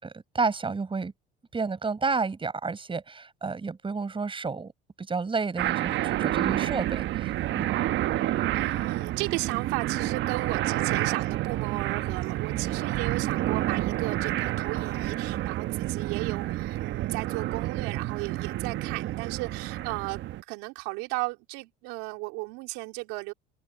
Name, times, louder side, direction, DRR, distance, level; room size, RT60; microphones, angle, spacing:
voice 1, 0.0-1.1 1.5-4.7 5.0-7.7, right 4 dB, 25° right, 5.9 m, -31 dB
sound 1, 5.6-20.4, right 15 dB, 60° right, 1.3 m, -29 dB
voice 2, 8.5-20.2 20.5-23.3, right 26 dB, 80° right, 3.7 m, -35 dB
supercardioid pair, 80°, 21 cm